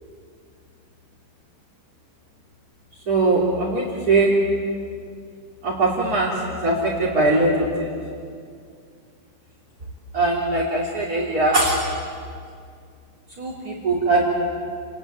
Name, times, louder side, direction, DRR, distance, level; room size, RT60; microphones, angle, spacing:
voice 1, 3.1-4.3 5.6-6.3 6.6-7.9 10.1-11.8 13.4-14.2, right 2 dB, 25° right, -5 dB, 3.6 m, -21 dB
29.0 x 21.0 x 8.9 m, 2.3 s
omnidirectional pair, 3.8 m